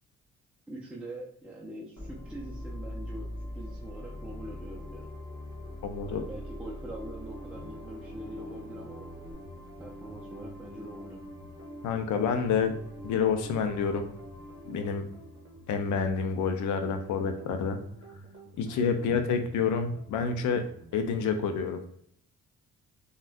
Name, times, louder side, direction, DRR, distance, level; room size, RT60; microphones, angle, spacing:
voice 1, 0.7-5.1 6.1-9.1 9.8-11.2 18.9-19.1, right 1 dB, 5° right, -4 dB, 0.5 m, -43 dB
sound 1, 2.0-16.4, equal, 55° left, 1.3 m, -49 dB
sound 2, 2.0-9.3, left 1 dB, 15° left, 1.4 m, -42 dB
voice 2, 5.8-6.2 11.8-12.7 13.0-14.1 14.7-15.0 15.7-17.8 18.6-20.7 20.9-21.8, left 6 dB, 75° left, 7 dB, 0.5 m, -28 dB
sound 3, 7.5-21.2, left 1 dB, 40° right, 0.8 m, -51 dB
3.4 x 2.3 x 2.6 m, 0.64 s
cardioid pair, 90°, 30 cm